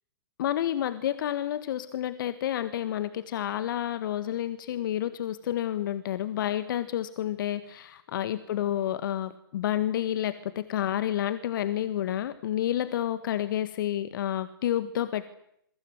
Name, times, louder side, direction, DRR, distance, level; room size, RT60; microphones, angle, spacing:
voice 1, 0.4-15.3, left 11 dB, 55° left, 14 dB, 1.7 m, -30 dB
27.5 x 23.0 x 8.0 m, 0.74 s
hypercardioid pair, 120°, 13 cm